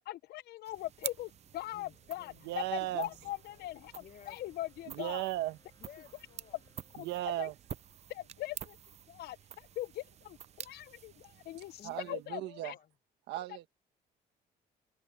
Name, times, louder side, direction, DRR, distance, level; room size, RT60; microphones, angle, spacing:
voice 1, 0.1-5.2 6.9-7.1 7.4-7.5 8.1-8.8 9.1-11.8 12.1-12.8, left 15 dB, 75° left, 0.8 m, -41 dB
sound 1, 0.6-12.3, right 9 dB, 40° right, 0.5 m, -49 dB
sound 2, 0.9-8.7, left 4 dB, 25° left, 5.9 m, -70 dB
voice 2, 1.7-4.4 5.8-6.6 11.8-12.9, left 10 dB, 55° left, 1.4 m, -57 dB
voice 3, 2.4-3.1 4.9-5.6 7.0-7.5 11.8-12.7 13.3-13.7, right 15 dB, 85° right, 1.5 m, -36 dB
cardioid pair, 110°, 17 cm